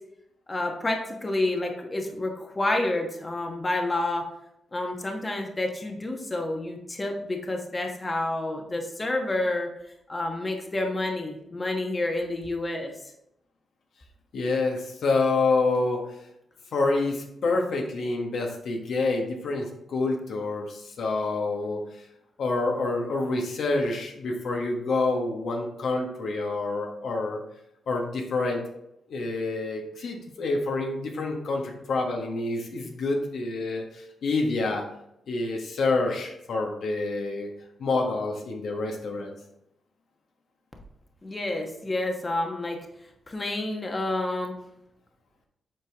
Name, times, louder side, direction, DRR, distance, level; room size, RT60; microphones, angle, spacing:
voice 1, 0.5-4.2 4.7-9.7 10.1-13.1 41.2-42.8 43.3-44.5, left 2 dB, 25° left, 2 dB, 1.2 m, -29 dB
voice 2, 14.3-16.1 16.7-22.1 22.4-27.4 27.9-28.6 29.1-34.8 35.3-37.5 37.8-39.3, left 3 dB, 75° left, 1 dB, 1.2 m, -27 dB
7.8 x 4.5 x 3.4 m, 0.81 s
cardioid pair, 80°, 0 cm